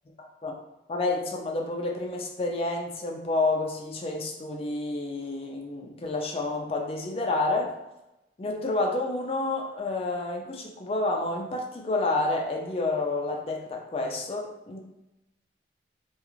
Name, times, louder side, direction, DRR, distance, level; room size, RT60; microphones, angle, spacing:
voice 1, 0.9-7.8 8.4-14.8, left 2 dB, 35° left, 0 dB, 0.4 m, -29 dB
2.4 x 2.3 x 3.0 m, 0.95 s
head